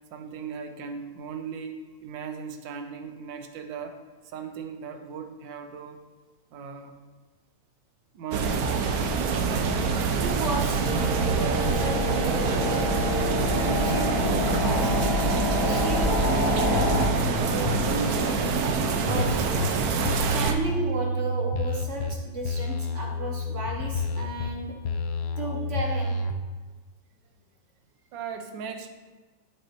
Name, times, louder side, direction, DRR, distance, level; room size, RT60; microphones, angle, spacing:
voice 1, 0.1-4.0 4.3-6.0 6.5-7.0 8.1-8.8 28.1-28.9, right 6 dB, 70° right, 6 dB, 1.3 m, -38 dB
sound 1, 8.3-20.5, right 5 dB, 85° right, 0.8 m, -25 dB
voice 2, 10.2-10.9 11.2-12.9 13.5-14.9 15.5-19.5 20.3-24.7 25.4-26.1, right 3 dB, 45° right, -1 dB, 1.1 m, -34 dB
sound 2, 10.4-17.1, left 3 dB, 50° left, 1.2 m, -28 dB
sound 3, 16.8-17.3 17.6-19.7 20.0-22.1 22.4-24.5 24.8-26.3, left 2 dB, 80° left, 0.9 m, -30 dB
12.0 x 5.4 x 2.9 m, 1.3 s
omnidirectional pair, 2.3 m